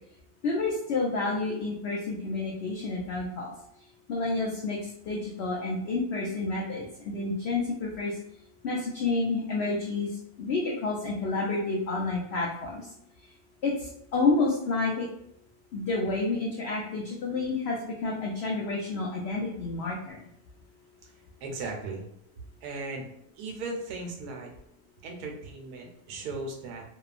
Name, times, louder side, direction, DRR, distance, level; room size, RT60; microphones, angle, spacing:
voice 1, 0.4-3.5 4.1-4.8 5.1-8.1 8.6-10.1 10.4-12.8 13.6-15.1 15.7-20.2, left 3 dB, 80° left, -2 dB, 0.5 m, -29 dB
voice 2, 21.0-22.1 22.6-23.1 23.4-24.5 25.0-26.8, right 3 dB, 80° right, 1 dB, 1.1 m, -37 dB
2.8 x 2.3 x 2.4 m, 0.73 s
omnidirectional pair, 1.6 m